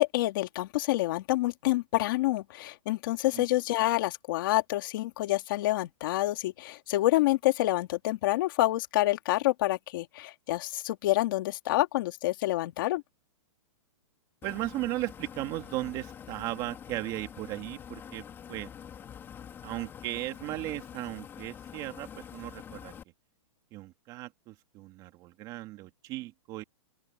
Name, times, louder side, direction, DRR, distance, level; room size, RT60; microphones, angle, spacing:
voice 1, 0.0-13.0, left 17 dB, 40° left, 2.4 m, -27 dB
sound 1, 14.4-23.0, left 8 dB, 15° left, 3.9 m, -46 dB
voice 2, 14.4-18.7 19.6-22.9 23.7-26.6, right 17 dB, 25° right, 2.3 m, -36 dB
open air
hypercardioid pair, 165°, 17 cm